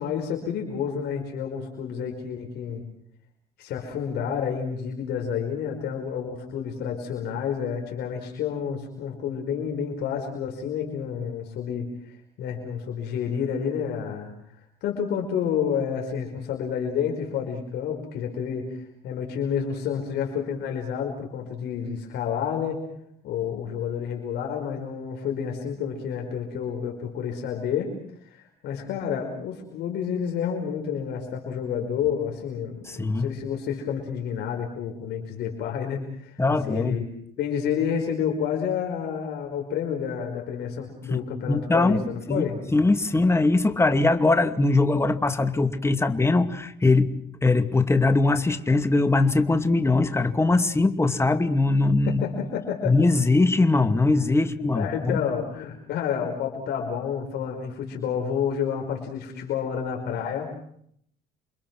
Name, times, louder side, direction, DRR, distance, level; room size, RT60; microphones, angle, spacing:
voice 1, 0.0-2.8 3.6-14.3 14.8-22.8 23.2-27.9 28.3-37.1 37.4-42.6 52.1-52.9 54.7-60.5, left 7 dB, 75° left, 2 dB, 5.3 m, -29 dB
voice 2, 32.9-33.3 36.4-37.0 41.1-41.2 41.5-42.0 42.3-47.1 47.4-52.2 52.8-55.2, left 3 dB, 15° left, 7 dB, 2.5 m, -21 dB
30.0 x 25.0 x 6.2 m, 0.68 s
cardioid pair, 110°, 17 cm